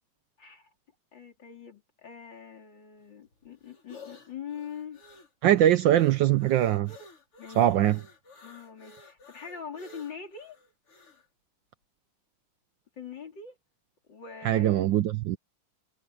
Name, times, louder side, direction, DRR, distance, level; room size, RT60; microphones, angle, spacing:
voice 1, 0.4-0.7 1.1-5.0 7.4-7.7 8.4-10.6 13.0-13.6 14.1-14.9, left 7 dB, 55° left, 4.0 m, -43 dB
sound 1, 3.0-11.3, left 2 dB, 85° left, 5.8 m, -52 dB
voice 2, 5.4-6.9 7.6-8.0 14.4-15.4, right 12 dB, 75° right, 1.2 m, -22 dB
omnidirectional pair, 2.4 m